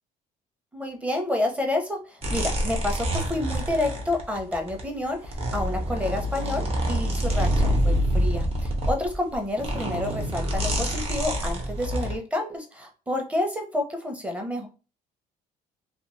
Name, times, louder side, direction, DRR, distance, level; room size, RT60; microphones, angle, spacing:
voice 1, 0.7-14.7, left 1 dB, 10° right, 3 dB, 0.7 m, -29 dB
sound 1, 2.2-4.8 5.2-12.2, equal, 35° right, 0.9 m, -26 dB
2.5 x 2.3 x 3.1 m, 0.33 s
cardioid pair, 110°, 17 cm